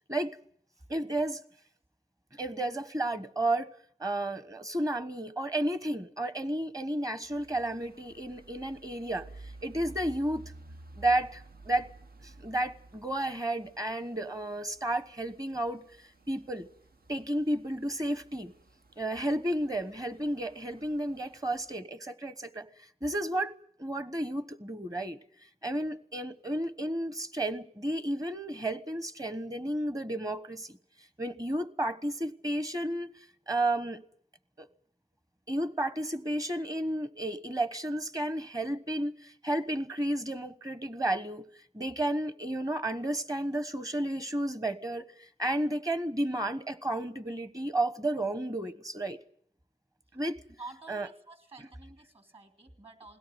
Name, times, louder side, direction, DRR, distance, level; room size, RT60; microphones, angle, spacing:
voice 1, 0.9-1.4 2.3-3.7 4.0-9.3 9.6-10.5 11.0-11.9 12.2-15.8 16.3-16.7 17.1-18.5 19.0-22.7 23.0-23.5 23.8-25.2 25.6-30.8 31.2-33.1 33.5-34.0 34.6-34.7 35.5-41.4 41.7-45.1 45.4-49.2 50.1-50.4 50.9-51.1, right 1 dB, 25° right, 1.2 m, -32 dB
sound 1, 7.2-21.8, right 2 dB, 85° right, 1.1 m, -53 dB
voice 2, 50.6-53.2, right 3 dB, 40° right, 3.4 m, -49 dB
21.0 x 17.0 x 9.4 m
wide cardioid pair, 60°, 15 cm